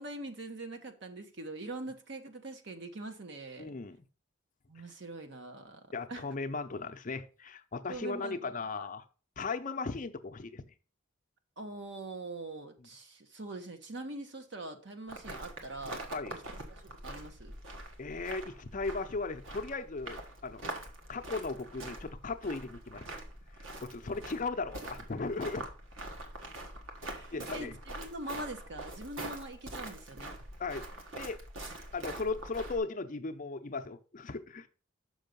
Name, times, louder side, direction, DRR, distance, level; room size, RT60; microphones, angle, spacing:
voice 1, 0.0-3.8 4.7-5.8 6.1-6.3 7.9-8.4 8.7-8.9 11.6-17.6 27.1-30.3, right 2 dB, 65° right, 7 dB, 1.1 m, -43 dB
voice 2, 3.6-4.0 5.9-9.0 9.4-10.6 16.1-16.4 18.0-20.7 21.1-23.0 23.8-25.6 27.3-27.7 30.6-30.8 31.1-31.4 31.9-34.7, left 3 dB, 40° left, 8 dB, 0.6 m, -37 dB
sound 1, 15.1-32.8, right 1 dB, 90° right, 1.4 m, -44 dB
6.5 x 5.4 x 5.2 m, 0.37 s
head